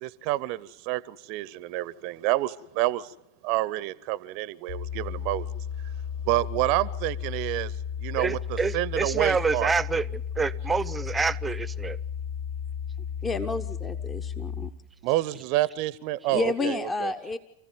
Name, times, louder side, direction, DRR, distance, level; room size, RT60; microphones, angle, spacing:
voice 1, 0.0-3.1 3.4-5.5 6.3-7.7 8.0-9.7 15.0-17.1, right 17 dB, 45° right, 0.8 m, -28 dB
sound 1, 4.7-14.7, left 8 dB, 70° left, 5.3 m, -34 dB
voice 2, 8.2-12.0 16.6-16.7, right 4 dB, 10° right, 0.9 m, -27 dB
voice 3, 13.2-14.7 16.3-17.4, left 3 dB, 15° left, 1.1 m, -30 dB
29.0 x 15.5 x 9.2 m
figure-of-eight pair, 90°, 0 cm